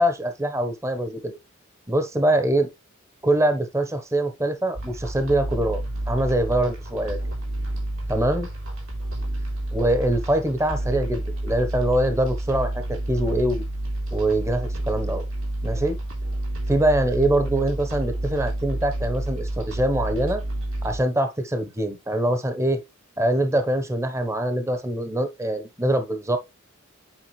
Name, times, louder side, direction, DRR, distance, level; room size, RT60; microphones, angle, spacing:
voice 1, 0.0-1.4 1.9-2.7 3.2-5.8 6.1-7.2 8.1-8.5 9.7-13.6 14.1-15.3 15.6-16.0 16.7-20.4 20.8-22.8 23.2-26.4, right 1 dB, 15° right, 1.0 m, -23 dB
sound 1, 4.7-21.0, right 1 dB, 80° right, 3.6 m, -29 dB
8.9 x 5.0 x 3.2 m
head